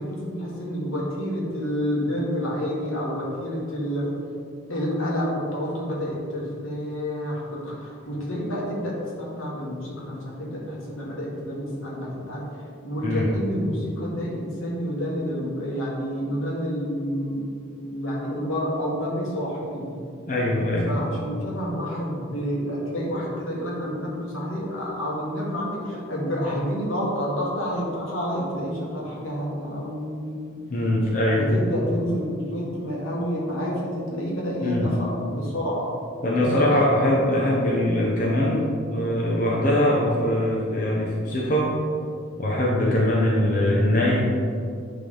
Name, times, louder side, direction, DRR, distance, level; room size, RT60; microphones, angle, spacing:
voice 1, 0.0-4.1 4.7-12.5 12.8-17.4 17.7-20.0 20.9-30.6 31.4-35.9 36.4-37.0, equal, 85° left, -4 dB, 1.8 m, -29 dB
voice 2, 20.3-20.9 30.7-31.4 34.6-34.9 36.2-41.8 42.4-44.3, left 1 dB, 40° left, -4 dB, 0.9 m, -22 dB
9.9 x 3.7 x 3.9 m, 2.3 s
head